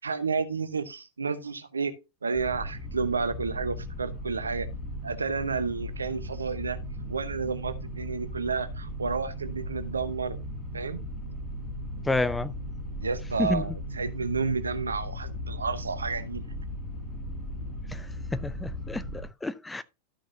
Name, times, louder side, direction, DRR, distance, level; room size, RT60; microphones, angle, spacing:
voice 1, 0.0-1.9 2.2-4.7 5.0-6.8 7.1-10.4 10.7-11.0 13.0-16.4, right 4 dB, 75° right, 0.9 m, -31 dB
sound 1, 2.3-19.2, equal, 30° left, 3.8 m, -37 dB
voice 2, 12.0-12.5 13.4-13.6 17.9-19.8, left 2 dB, 10° left, 0.5 m, -30 dB
13.0 x 6.3 x 2.8 m
figure-of-eight pair, 90°, 0 cm